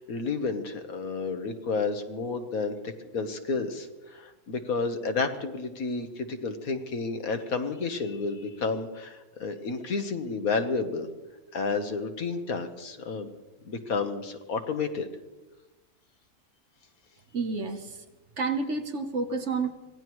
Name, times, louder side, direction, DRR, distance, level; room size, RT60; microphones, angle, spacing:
voice 1, 0.0-11.1 11.5-13.3 13.6-15.1, left 4 dB, 65° left, 7 dB, 1.6 m, -31 dB
voice 2, 17.3-18.0 18.4-19.7, right 4 dB, 50° right, 7 dB, 1.3 m, -30 dB
25.5 x 18.0 x 3.1 m, 1.1 s
omnidirectional pair, 1.7 m